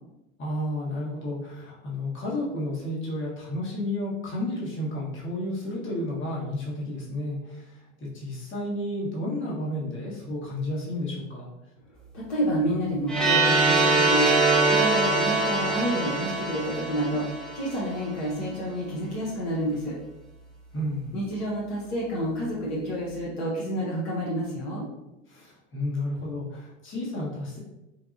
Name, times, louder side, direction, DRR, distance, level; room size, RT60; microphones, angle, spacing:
voice 1, 0.4-11.5 20.7-21.1 25.3-27.6, left 1 dB, 30° left, -5 dB, 1.4 m, -32 dB
voice 2, 12.1-17.3 17.5-19.9 21.1-24.9, right 1 dB, 60° left, -5 dB, 1.2 m, -29 dB
sound 1, 13.1-17.9, right 3 dB, ahead, 0.7 m, -23 dB
4.6 x 2.3 x 2.6 m, 0.95 s
hypercardioid pair, 90°, 38 cm